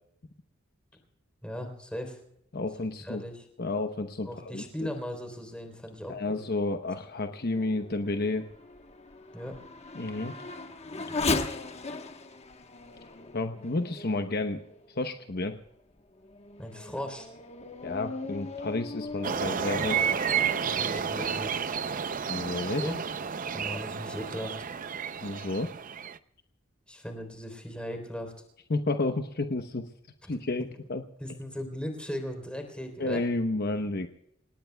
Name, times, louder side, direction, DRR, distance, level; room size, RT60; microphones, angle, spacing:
voice 1, 1.4-2.2 3.0-3.5 4.2-6.4 9.3-9.6 16.6-17.3 20.6-21.6 22.8-22.9 23.5-24.6 26.9-28.3 30.2-30.3 31.2-33.2, equal, 5° left, 5 dB, 3.6 m, -37 dB
voice 2, 2.5-3.2 3.6-4.9 6.1-8.5 9.9-10.3 13.3-14.6 15.0-15.6 17.8-20.3 22.3-22.9 25.2-25.7 28.7-29.9 30.3-31.0 33.0-34.1, left 2 dB, 55° left, 7 dB, 0.9 m, -31 dB
Race car auto racing / Accelerating revving vroom, 7.0-14.9 15.5-15.6 16.2-21.0, left 3 dB, 35° left, 1.2 m, -38 dB
sound 1, 19.2-26.2, right 7 dB, 45° right, 0.6 m, -31 dB
28.5 x 18.5 x 2.3 m, 0.75 s
head